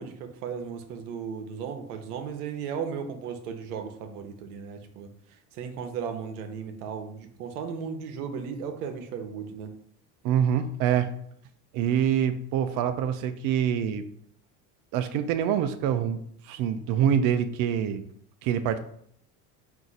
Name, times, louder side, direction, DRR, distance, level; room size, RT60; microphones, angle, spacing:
voice 1, 0.0-5.1 5.5-9.7, right 6 dB, 85° right, 6 dB, 0.8 m, -36 dB
voice 2, 10.2-11.1 11.7-14.0 14.9-18.0 18.4-18.8, right 9 dB, 50° right, 8 dB, 0.4 m, -25 dB
4.6 x 2.6 x 3.9 m, 0.66 s
supercardioid pair, 95°, 44 cm